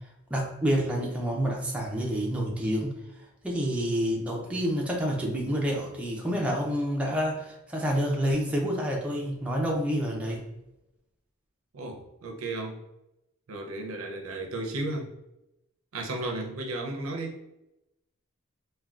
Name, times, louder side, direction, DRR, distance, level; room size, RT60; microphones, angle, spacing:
voice 1, 0.3-3.0 3.4-10.4, equal, 5° right, -2 dB, 0.4 m, -28 dB
voice 2, 11.7-12.8 13.5-15.1 15.9-17.4, right 2 dB, 75° right, 2 dB, 0.5 m, -34 dB
3.4 x 2.2 x 2.3 m, 0.90 s
head